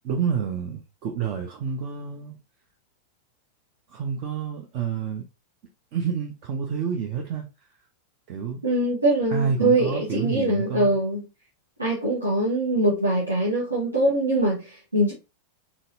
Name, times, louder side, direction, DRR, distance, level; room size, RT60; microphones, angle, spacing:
voice 1, 0.0-2.4 3.9-5.3 5.9-7.5 8.3-8.6 9.3-11.0, right 6 dB, 45° right, 0.7 m, -28 dB
voice 2, 8.6-11.2 11.8-15.1, right 1 dB, 80° right, 1.3 m, -23 dB
4.1 x 3.6 x 2.6 m
figure-of-eight pair, 90°, 0 cm